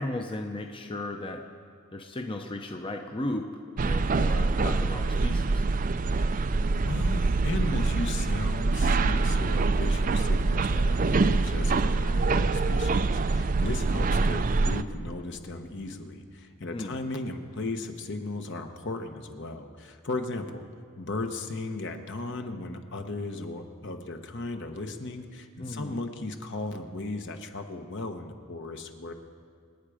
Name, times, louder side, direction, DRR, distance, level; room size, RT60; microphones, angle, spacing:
voice 1, 0.0-1.4 1.9-3.5 3.8-5.6 16.7-17.0 25.6-26.0, left 1 dB, 25° left, 3 dB, 0.7 m, -35 dB
sound 1, 3.8-14.8, right 3 dB, 40° right, 0.4 m, -25 dB
voice 2, 6.1-6.5 6.7-20.7 21.0-29.1, left 2 dB, 55° left, 5 dB, 1.1 m, -36 dB
27.0 x 9.1 x 5.0 m, 2.2 s
head